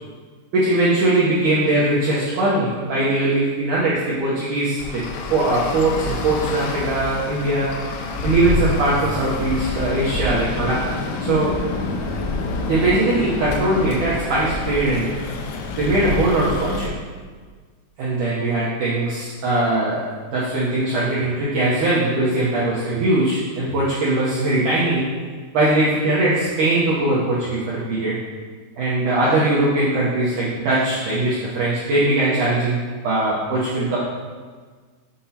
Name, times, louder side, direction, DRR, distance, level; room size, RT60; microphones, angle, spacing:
voice 1, 0.5-5.0 5.3-7.8 8.2-11.6 12.7-15.1 15.8-16.9 18.0-25.1 25.5-28.2 28.8-34.0, right 2 dB, 85° right, -7 dB, 1.8 m, -20 dB
Traffic noise roadway noise, 4.8-16.9, left 3 dB, 85° left, 2.2 m, -27 dB
8.1 x 5.6 x 2.8 m, 1.5 s
omnidirectional pair, 4.8 m